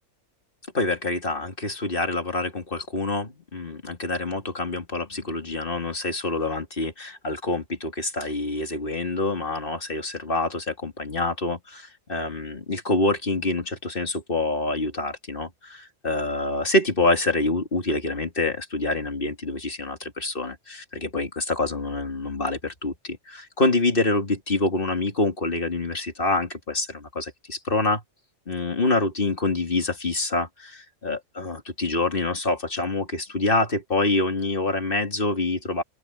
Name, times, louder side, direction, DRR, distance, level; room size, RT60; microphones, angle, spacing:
voice 1, 0.7-28.0 28.5-35.8, left 2 dB, 40° left, 2.8 m, -26 dB
open air
omnidirectional pair, 1.4 m